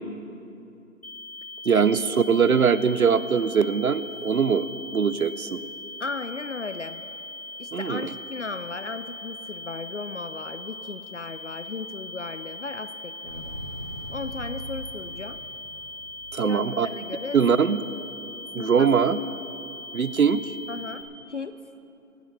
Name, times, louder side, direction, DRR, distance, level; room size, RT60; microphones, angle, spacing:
sound 1, 1.0-21.0, left 2 dB, 25° left, 1.4 m, -40 dB
voice 1, 1.7-2.0 2.3-4.7 4.9-5.6 7.7-8.0 16.3-16.9 17.3-17.8 18.5-19.2 19.9-20.4, right 6 dB, 75° right, 15 dB, 0.7 m, -21 dB
voice 2, 6.0-7.1 7.6-13.6 14.1-15.4 16.4-17.4 18.5-18.9 20.7-21.6, left 4 dB, 55° left, 11 dB, 0.5 m, -36 dB
Motorcycle, 13.2-17.2, equal, 10° right, 1.8 m, -40 dB
16.5 x 6.6 x 8.4 m, 2.8 s
figure-of-eight pair, 175°, 43 cm